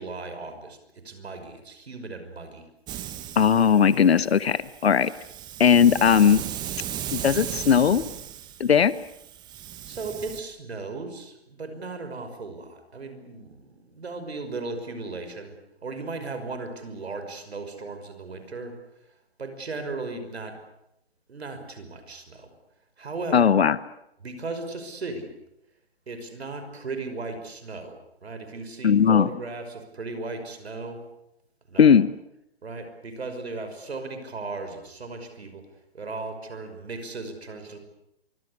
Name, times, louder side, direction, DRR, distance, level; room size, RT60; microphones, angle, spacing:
voice 1, 0.0-2.7 9.9-20.6 21.3-22.5 23.0-23.5 24.2-25.3 26.1-31.0 31.7-31.9 32.6-35.7 35.9-37.8, right 3 dB, 85° right, 8 dB, 5.7 m, -36 dB
Hiss, 2.9-10.4, right 11 dB, 15° right, 1.3 m, -37 dB
voice 2, 3.4-5.1 5.6-6.4 7.1-8.0 8.6-8.9 23.3-23.8 28.8-29.3 31.8-32.1, left 7 dB, 75° left, 16 dB, 1.1 m, -18 dB
24.5 x 21.5 x 8.2 m, 0.83 s
hypercardioid pair, 150°, 31 cm